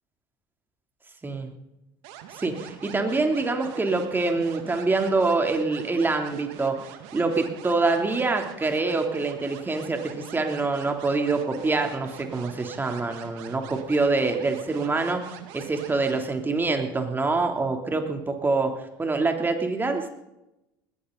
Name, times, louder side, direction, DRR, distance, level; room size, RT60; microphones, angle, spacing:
sound 1, 2.0-16.2, right 10 dB, 65° right, 2.0 m, -44 dB
voice 1, 2.3-6.8 7.1-15.2 15.5-18.7 19.0-20.1, right 3 dB, 20° right, 4 dB, 3.2 m, -25 dB
20.5 x 15.5 x 4.0 m, 0.90 s
hypercardioid pair, 70°, 11 cm